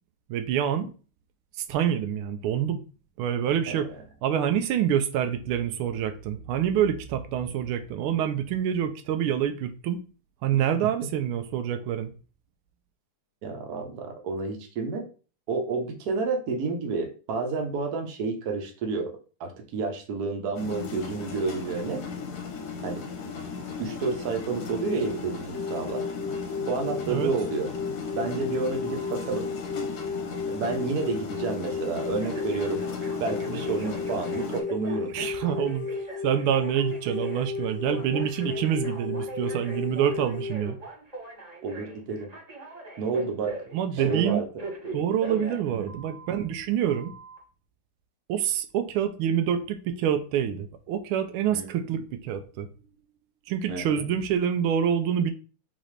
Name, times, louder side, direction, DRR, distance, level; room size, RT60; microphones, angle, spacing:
voice 1, 0.3-0.9 1.6-2.8 3.2-3.9 4.2-10.0 10.4-12.1 27.1-27.3 35.1-35.9 36.2-40.8 43.7-44.4 44.9-47.1 48.3-52.7 53.5-55.3, right 9 dB, 85° right, 1.4 m, -26 dB
voice 2, 13.4-15.1 15.5-19.1 19.4-22.0 22.8-23.0 23.8-26.0 26.7-27.7 28.2-29.5 30.5-32.8 33.2-35.1 41.6-42.3 43.0-43.5 44.0-44.5 45.7-46.0 51.5-51.7 53.7-54.0, right 4 dB, 55° right, 1.3 m, -30 dB
sound 1, 20.5-34.6, left 5 dB, 60° left, 1.1 m, -36 dB
sound 2, 25.5-40.5, left 5 dB, 30° left, 0.4 m, -34 dB
Telephone, 28.9-29.4 32.2-46.4 46.9-47.4, right 2 dB, 20° right, 1.5 m, -41 dB
4.0 x 4.0 x 3.2 m
omnidirectional pair, 2.3 m